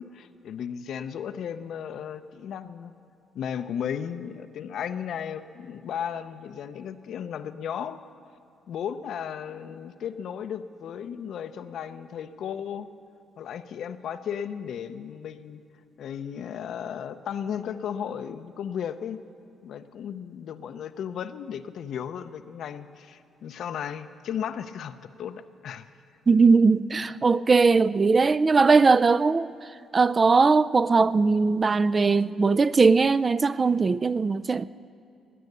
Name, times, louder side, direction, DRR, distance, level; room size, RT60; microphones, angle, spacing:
voice 1, 0.0-2.9 3.3-8.0 8.7-12.9 13.4-15.6 16.0-19.2 19.6-25.9, left 8 dB, 70° left, 0.6 m, -35 dB
voice 2, 26.3-29.5 29.9-34.6, right 4 dB, 30° right, 0.3 m, -20 dB
18.5 x 9.4 x 6.7 m
cardioid pair, 90°, 0 cm